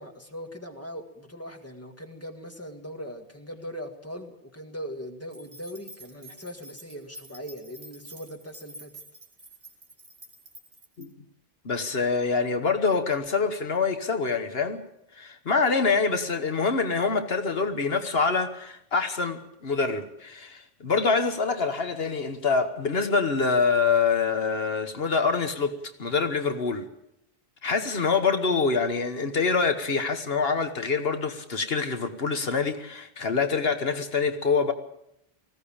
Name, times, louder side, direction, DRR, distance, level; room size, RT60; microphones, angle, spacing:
voice 1, 0.0-8.9, equal, 15° left, 5 dB, 1.8 m, -40 dB
sound 1, 5.3-11.1, right 1 dB, 50° right, 3.1 m, -48 dB
voice 2, 11.6-14.8 15.2-26.9 27.6-34.7, left 4 dB, 70° left, 8 dB, 1.5 m, -25 dB
19.5 x 16.0 x 8.7 m, 0.79 s
omnidirectional pair, 1.0 m